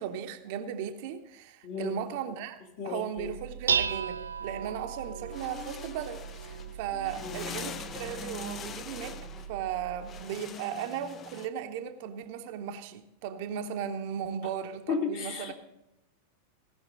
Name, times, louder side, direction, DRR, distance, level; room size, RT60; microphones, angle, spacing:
voice 1, 0.0-2.6 2.8-9.2 9.5-15.5, right 9 dB, 50° right, 0.8 m, -36 dB
voice 2, 1.6-2.0 2.8-3.3 7.2-7.5 14.9-15.5, left 5 dB, 50° left, 1.9 m, -34 dB
Dishes pots and pans, 3.2-10.2, right 6 dB, 70° right, 0.4 m, -36 dB
sound 1, 5.0-11.5, left 6 dB, 25° left, 0.5 m, -43 dB
17.0 x 5.9 x 5.1 m
figure-of-eight pair, 90°, 0 cm